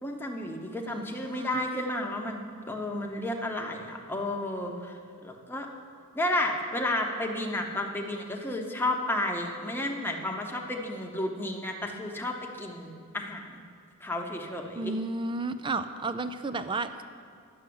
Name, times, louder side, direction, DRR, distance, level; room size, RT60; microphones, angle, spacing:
voice 1, 0.0-4.9 5.2-5.7 6.1-13.6 14.0-14.9, left 1 dB, 10° left, 1 dB, 1.0 m, -32 dB
voice 2, 0.8-1.6 14.8-17.0, right 3 dB, 20° right, 11 dB, 0.4 m, -33 dB
11.0 x 7.3 x 7.8 m, 2.4 s
head